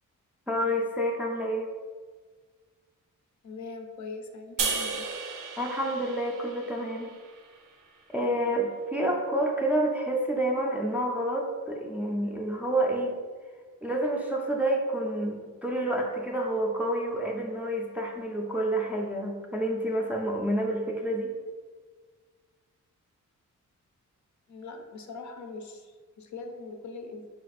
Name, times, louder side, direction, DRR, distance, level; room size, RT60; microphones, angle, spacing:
voice 1, 0.5-1.7 5.6-7.1 8.1-13.2 13.8-21.3, right 1 dB, 5° right, -1 dB, 0.4 m, -28 dB
voice 2, 3.4-5.1 24.5-27.2, left 3 dB, 65° left, 4 dB, 0.5 m, -41 dB
sound 1, 4.6-7.9, right 5 dB, 85° right, 0.6 m, -34 dB
4.2 x 2.4 x 4.0 m, 1.5 s
wide cardioid pair, 145°, 32 cm